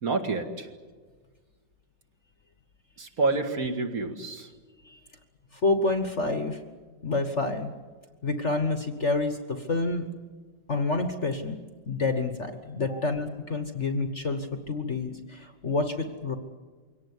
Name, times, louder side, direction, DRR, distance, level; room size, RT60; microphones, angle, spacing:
voice 1, 0.0-0.7 3.0-4.5, right 3 dB, 45° right, 6 dB, 2.3 m, -28 dB
voice 2, 5.5-6.6 7.0-7.7 8.2-10.1 10.7-11.6 11.9-16.3, left 3 dB, 40° left, 7 dB, 1.4 m, -28 dB
23.5 x 18.0 x 9.7 m, 1.5 s
omnidirectional pair, 2.2 m